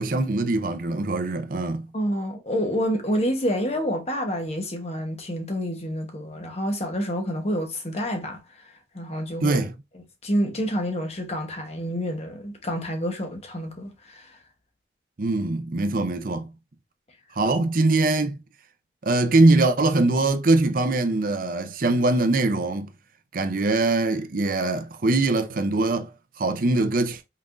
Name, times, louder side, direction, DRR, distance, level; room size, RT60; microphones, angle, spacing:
voice 1, 0.0-1.9 9.4-9.7 15.2-16.5 17.4-18.4 19.0-22.9 23.3-26.1 26.4-27.2, right 2 dB, 50° right, 0.6 m, -22 dB
voice 2, 1.9-8.4 8.9-9.6 10.2-14.3, equal, 35° left, 1.1 m, -28 dB
5.7 x 3.6 x 2.5 m
head